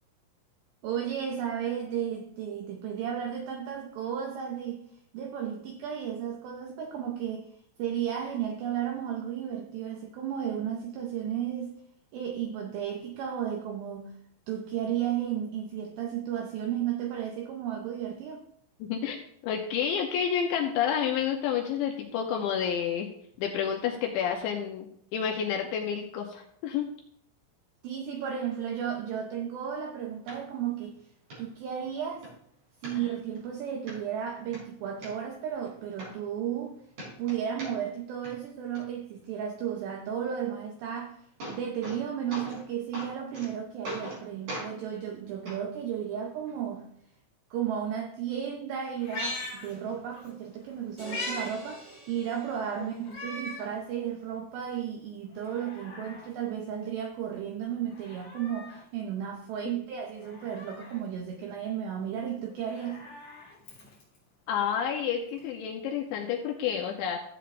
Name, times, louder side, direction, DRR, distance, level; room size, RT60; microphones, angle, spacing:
voice 1, 0.8-4.8 5.1-7.5 7.8-11.8 12.1-14.2 14.5-18.5 27.8-31.0 31.4-32.3 32.8-36.8 37.2-41.2 41.5-46.9 47.5-63.0, right 9 dB, 85° right, 2.4 m, -34 dB
voice 2, 18.8-19.2 19.4-23.1 23.4-26.9 33.0-33.1 64.5-67.2, left 8 dB, 80° left, 2.7 m, -29 dB
sound 1, 30.3-30.4 30.8-30.9 31.3-31.4 31.9-32.3 32.8-33.4 33.9-34.0 34.4-35.1 35.7-35.8 36.0-36.7 36.9-38.0 38.2-38.8 40.8-40.9 41.2-42.0 42.3-42.6 42.9-43.5 43.8-44.2 44.5-44.7 45.5-45.6 46.5-46.6, equal, 40° right, 5.9 m, -40 dB
Meow, 49.0-50.3 50.7-51.5 51.9-52.0 53.0-53.7 54.2-54.3 55.3-56.3 57.9-58.8 60.2-61.0 62.5-64.2 65.4-65.5, left 2 dB, 40° left, 4.0 m, -40 dB
sound 2, 51.0-53.3, right 3 dB, 15° right, 3.3 m, -47 dB
15.0 x 8.0 x 2.5 m
omnidirectional pair, 6.0 m